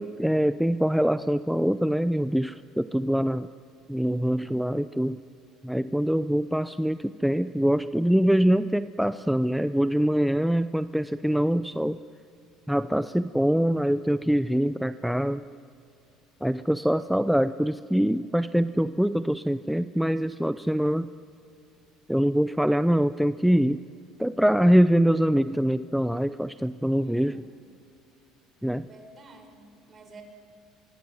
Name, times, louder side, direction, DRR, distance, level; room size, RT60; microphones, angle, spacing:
voice 1, 0.0-3.5 3.9-5.2 5.6-12.0 12.7-15.4 16.4-21.1 22.1-23.8 24.2-27.5 28.6-28.9, equal, ahead, 13 dB, 0.6 m, -24 dB
voice 2, 26.9-27.5 28.8-30.2, right 2 dB, 35° right, 5 dB, 5.9 m, -51 dB
24.5 x 23.5 x 9.6 m, 2.5 s
supercardioid pair, 90°, 0 cm